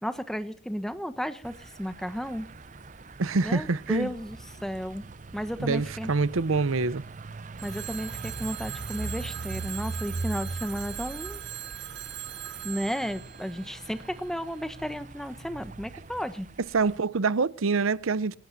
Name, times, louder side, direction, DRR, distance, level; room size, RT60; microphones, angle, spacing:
voice 1, 0.0-2.5 3.4-5.0 5.3-6.1 7.6-11.4 12.6-16.5, equal, ahead, 1.0 m, -33 dB
sound 1, 1.4-17.0, right 3 dB, 35° right, 0.7 m, -41 dB
voice 2, 3.2-4.1 5.6-7.0 16.7-18.4, right 4 dB, 80° right, 0.7 m, -26 dB
Telephone, 7.6-14.4, right 13 dB, 55° right, 1.3 m, -40 dB
28.0 x 18.0 x 2.7 m
head